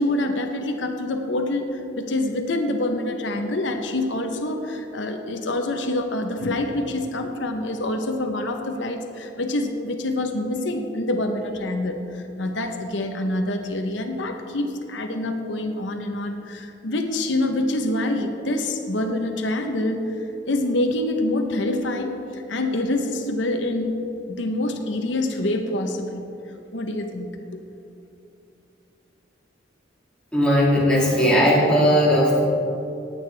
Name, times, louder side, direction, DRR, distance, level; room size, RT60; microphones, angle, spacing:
voice 1, 0.0-23.9 24.3-26.3 26.7-27.6, left 1 dB, 85° left, 5 dB, 0.9 m, -26 dB
voice 2, 30.3-32.4, equal, 5° left, -7 dB, 2.5 m, -18 dB
18.5 x 8.7 x 3.4 m, 2.8 s
head